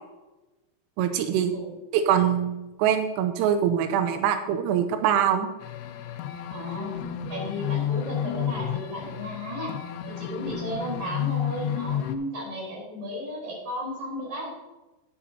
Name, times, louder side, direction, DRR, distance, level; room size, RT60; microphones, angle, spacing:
voice 1, 1.0-1.5 1.9-5.5, right 9 dB, 90° right, 7 dB, 3.3 m, -23 dB
sound 1, 5.6-12.2, left 9 dB, 85° left, 2.4 m, -31 dB
voice 2, 6.5-6.9 7.3-9.8 10.1-14.5, equal, 35° right, -3 dB, 4.7 m, -34 dB
13.0 x 9.9 x 2.8 m, 1.1 s
omnidirectional pair, 5.8 m